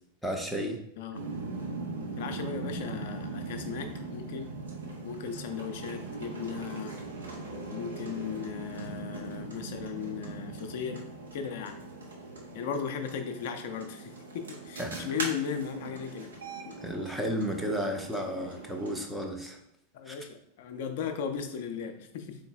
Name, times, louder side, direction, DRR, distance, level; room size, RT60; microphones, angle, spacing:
voice 1, 0.2-0.8 14.8-15.1 16.8-19.6 20.1-20.2, equal, ahead, 2 dB, 0.6 m, -33 dB
sound 1, 1.1-19.1, right 3 dB, 70° right, 0.7 m, -40 dB
voice 2, 2.2-4.5 5.0-6.9 7.7-11.0 11.3-11.8 12.5-16.4 16.7-16.8 19.9-22.4, left 7 dB, 50° left, 6 dB, 0.5 m, -36 dB
3.9 x 3.8 x 2.3 m, 0.76 s
figure-of-eight pair, 90°, 0 cm